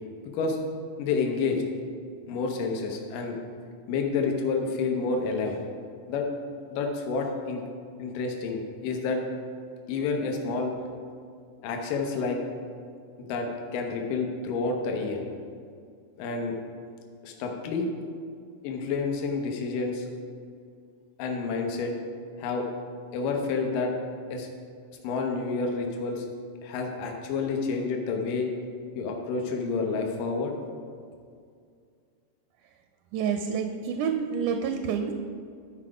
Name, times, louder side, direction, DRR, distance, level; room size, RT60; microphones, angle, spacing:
voice 1, 1.0-1.7 2.3-3.4 3.9-5.6 6.1-6.3 6.7-7.6 8.0-9.2 9.9-10.7 11.6-12.4 13.3-15.2 16.2-16.6 17.2-17.9 18.6-20.1 21.2-21.9 22.4-22.7 23.1-23.9 24.3-24.5 25.0-26.3 26.6-28.5 29.0-30.5, left 4 dB, 80° left, 2 dB, 2.5 m, -29 dB
voice 2, 33.1-35.1, right 7 dB, 80° right, 6 dB, 1.8 m, -28 dB
12.0 x 4.8 x 4.9 m, 2.2 s
omnidirectional pair, 3.8 m